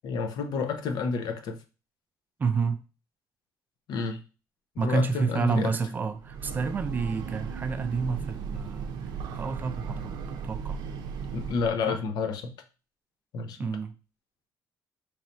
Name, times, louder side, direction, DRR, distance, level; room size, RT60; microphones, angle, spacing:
voice 1, 0.0-1.6 3.9-4.2 4.8-5.8 11.3-12.5 13.3-13.7, left 5 dB, 70° left, 0.7 m, -30 dB
voice 2, 2.4-2.8 4.8-8.9 9.3-10.2 10.4-10.8 11.9-12.0 13.6-13.9, right 5 dB, 25° right, 0.4 m, -29 dB
Breathing / Train, 6.1-11.9, right 6 dB, 85° right, 0.5 m, -36 dB
3.2 x 2.6 x 4.3 m
cardioid pair, 155°, 7 cm